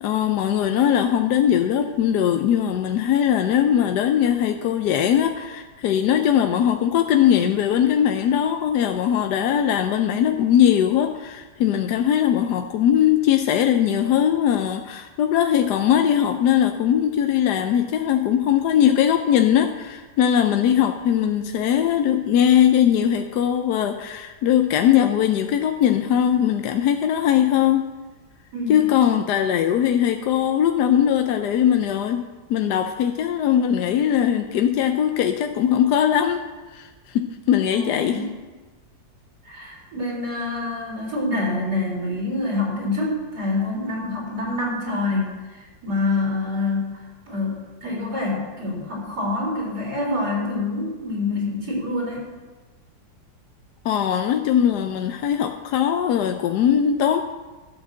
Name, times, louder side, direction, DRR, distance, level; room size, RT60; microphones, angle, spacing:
voice 1, 0.0-27.9 28.7-32.2 32.5-36.4 36.7-38.2 53.8-57.2, left 9 dB, 70° left, 5 dB, 1.1 m, -20 dB
voice 2, 37.7-38.3 39.4-52.2, left 2 dB, 60° right, -4 dB, 4.5 m, -26 dB
12.0 x 6.0 x 7.6 m, 1.3 s
omnidirectional pair, 2.0 m